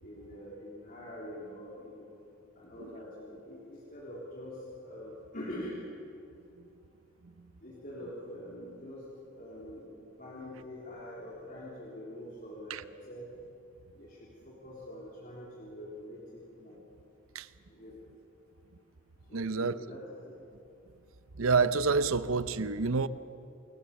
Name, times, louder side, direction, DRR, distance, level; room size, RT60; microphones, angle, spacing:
voice 1, 0.0-2.1 2.6-4.6 4.8-5.8 7.6-9.0 9.3-13.3 13.9-16.8 17.7-18.0 19.3-20.4, left 1 dB, 45° left, 3.6 m, -45 dB
voice 2, 19.3-19.8 21.4-23.1, right 4 dB, 85° right, 0.8 m, -27 dB
28.0 x 17.5 x 7.2 m
head